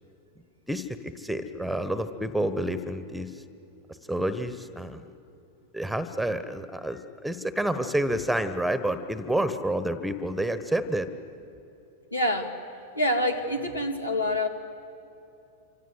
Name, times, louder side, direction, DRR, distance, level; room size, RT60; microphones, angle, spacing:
voice 1, 0.7-3.4 4.1-5.0 5.7-11.1, right 1 dB, ahead, 12 dB, 1.3 m, -29 dB
voice 2, 12.1-12.6 13.0-14.5, left 1 dB, 80° left, 5 dB, 2.3 m, -26 dB
27.5 x 26.0 x 8.2 m, 2.8 s
figure-of-eight pair, 90°, 0 cm